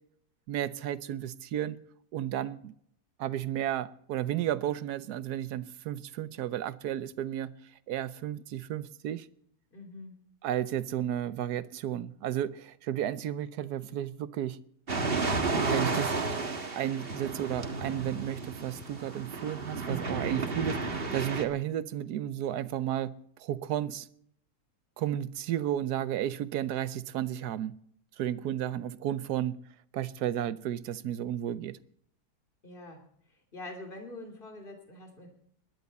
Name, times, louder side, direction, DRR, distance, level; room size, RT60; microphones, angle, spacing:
voice 1, 0.5-1.8 2.1-2.7 3.2-7.5 7.9-9.3 10.4-14.6 15.7-16.2 16.7-23.1 23.4-24.1 25.0-27.8 28.2-29.6 29.9-31.8, right 11 dB, 75° right, 1.3 m, -33 dB
voice 2, 9.7-10.2 32.6-33.0 33.5-35.3, left 2 dB, 30° left, 3.1 m, -44 dB
sound 1, 14.9-21.4, right 3 dB, 35° right, 1.7 m, -32 dB
21.0 x 11.0 x 4.2 m
omnidirectional pair, 1.7 m